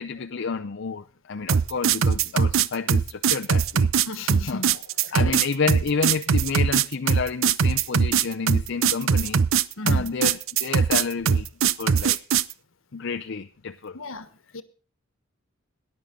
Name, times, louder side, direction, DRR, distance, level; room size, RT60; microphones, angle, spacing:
voice 1, 0.0-3.9 4.5-4.6 5.1-9.4 9.8-12.2 12.9-14.0, left 5 dB, 60° left, 0.6 m, -30 dB
sound 1, 1.5-12.5, right 7 dB, 75° right, 0.5 m, -21 dB
voice 2, 4.1-5.4 9.8-10.1 13.9-14.3 14.5-14.6, left 2 dB, 80° left, 1.3 m, -35 dB
18.5 x 11.0 x 3.8 m
head